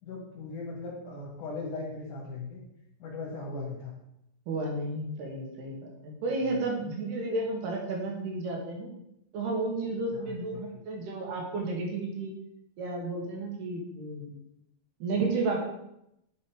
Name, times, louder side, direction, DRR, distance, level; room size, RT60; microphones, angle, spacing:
voice 1, 0.0-2.6 3.0-4.0 10.1-10.8, left 3 dB, 55° left, -4 dB, 2.8 m, -39 dB
voice 2, 4.5-8.9 9.3-12.3 12.8-14.3 15.0-15.7, right 2 dB, 65° right, -1 dB, 3.8 m, -32 dB
10.5 x 5.7 x 5.1 m, 0.81 s
omnidirectional pair, 5.2 m